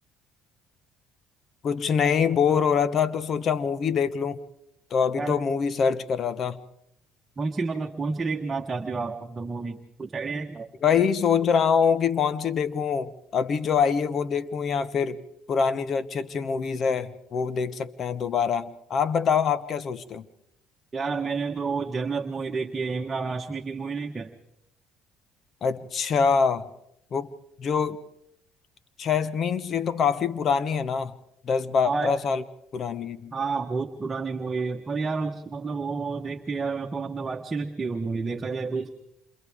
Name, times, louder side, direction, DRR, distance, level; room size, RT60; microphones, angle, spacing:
voice 1, 1.6-4.4 4.9-6.6 10.8-15.2 15.5-20.2 25.6-26.7 27.1-27.3 27.6-28.0 29.0-31.2 31.4-32.4 32.7-33.3, left 6 dB, 50° left, 1.2 m, -24 dB
voice 2, 7.4-10.7 20.9-24.3 31.8-32.1 33.3-38.9, right 4 dB, 25° right, 1.4 m, -30 dB
28.5 x 27.5 x 3.7 m
supercardioid pair, 75°, 0 cm